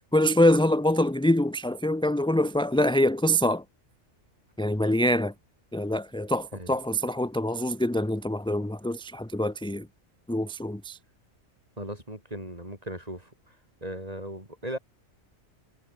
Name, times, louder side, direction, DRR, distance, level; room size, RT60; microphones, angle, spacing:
voice 1, 0.1-3.6 4.6-5.3 5.7-9.9 10.3-11.0, left 1 dB, 5° left, 0.7 m, -24 dB
voice 2, 11.8-13.3 13.8-14.8, right 1 dB, 25° right, 7.8 m, -37 dB
omnidirectional pair, 1.4 m